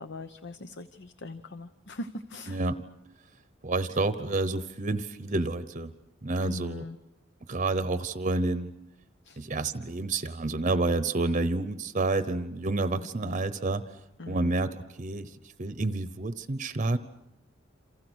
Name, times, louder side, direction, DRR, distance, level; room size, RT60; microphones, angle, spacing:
voice 1, 0.0-2.6 6.4-7.0 9.2-9.4 12.9-13.4 14.2-14.5, left 2 dB, 60° left, 11 dB, 1.0 m, -41 dB
voice 2, 2.5-2.8 3.6-5.9 6.2-6.8 7.5-8.7 9.4-14.0 14.3-17.0, right 2 dB, 40° right, 12 dB, 0.9 m, -29 dB
28.0 x 28.0 x 6.3 m, 0.88 s
head